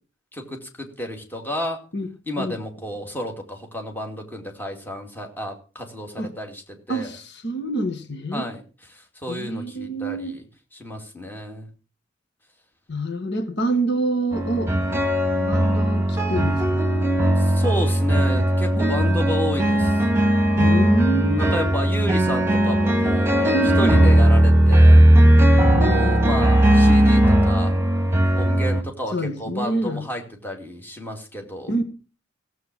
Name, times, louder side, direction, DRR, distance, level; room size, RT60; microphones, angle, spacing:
voice 1, 0.3-1.8 2.3-6.6 6.9-7.1 8.3-8.6 8.9-10.4 10.7-11.7 17.4-20.0 21.4-25.0 25.9-27.7 28.3-31.7, equal, 10° left, 2.5 m, -31 dB
voice 2, 6.9-8.5 9.3-10.4 12.9-14.7 15.4-16.8 18.7-19.3 20.6-21.7 23.5-24.0 25.7-26.5 29.1-30.0 31.7-31.8, right 1 dB, 60° left, 1.6 m, -26 dB
sound 1, 14.3-28.8, right 1 dB, 15° right, 2.3 m, -17 dB
16.0 x 8.1 x 6.2 m
head